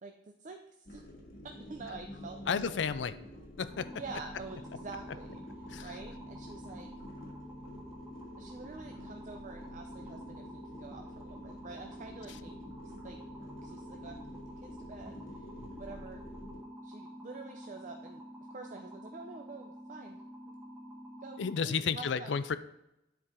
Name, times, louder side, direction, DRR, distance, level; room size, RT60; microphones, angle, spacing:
voice 1, 0.0-1.0 1.4-2.9 3.9-5.4 5.8-6.9 8.4-12.5 13.0-13.2 13.6-14.2 14.6-15.5 15.8-16.2 16.8-20.2 20.5-20.6 21.2-22.4, right 3 dB, 45° right, 4 dB, 0.5 m, -47 dB
sound 1, 0.8-16.6, left 1 dB, 55° left, 1.9 m, -49 dB
voice 2, 2.5-3.2 3.6-3.9 5.7-5.9 15.6-15.7 21.4-22.6, left 6 dB, 80° left, 14 dB, 0.4 m, -32 dB
sound 2, 3.7-21.5, equal, 15° right, 1.7 m, -48 dB
10.0 x 4.6 x 3.7 m, 0.87 s
head